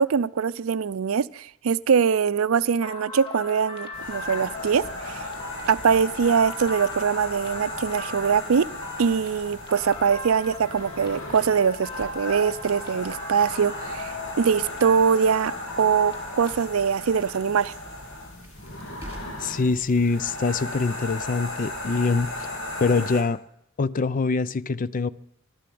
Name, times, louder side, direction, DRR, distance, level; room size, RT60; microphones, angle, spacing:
voice 1, 0.0-5.2 5.7-8.7 9.0-17.7, right 6 dB, 70° right, 0.5 m, -23 dB
sound 1, 2.8-16.5, left 2 dB, 25° left, 2.5 m, -39 dB
sound 2, 3.9-23.2, left 1 dB, 65° left, 3.5 m, -36 dB
Crackle, 18.0-19.6, equal, 10° right, 3.9 m, -52 dB
voice 2, 19.4-22.5 22.8-23.4 23.8-25.1, left 4 dB, 40° left, 0.5 m, -24 dB
13.0 x 12.0 x 7.7 m
head